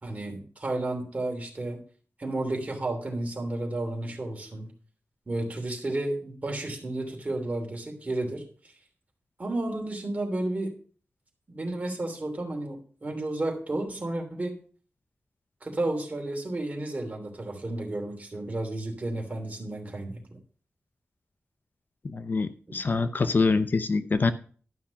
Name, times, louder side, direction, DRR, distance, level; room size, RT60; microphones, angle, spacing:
voice 1, 0.0-1.8 2.2-4.7 5.3-8.4 9.4-10.7 11.5-14.6 15.6-20.2 22.7-22.8, right 2 dB, 35° right, 1 dB, 3.0 m, -32 dB
voice 2, 22.0-24.3, left 4 dB, 50° left, 11 dB, 0.7 m, -25 dB
12.0 x 5.7 x 5.8 m, 0.42 s
wide cardioid pair, 120°, 4 cm